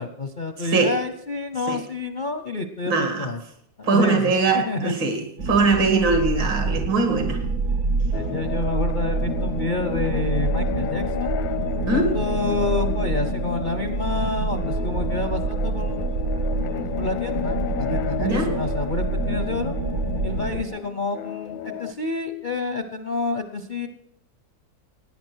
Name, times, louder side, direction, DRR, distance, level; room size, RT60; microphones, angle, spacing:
voice 1, 0.0-3.4 3.8-4.9 8.1-11.4 11.8-16.1 17.0-19.7 20.2-23.9, left 3 dB, 50° left, 0.6 m, -29 dB
voice 2, 0.6-1.0 1.7-1.8 2.9-3.3 3.9-7.4 11.9-12.2 18.2-18.6, right 3 dB, 75° right, 2.9 m, -21 dB
sound 1, 5.4-20.6, right 3 dB, 55° right, 0.9 m, -27 dB
sound 2, 8.1-21.9, left 10 dB, 85° left, 1.5 m, -32 dB
17.5 x 9.5 x 6.3 m
omnidirectional pair, 2.0 m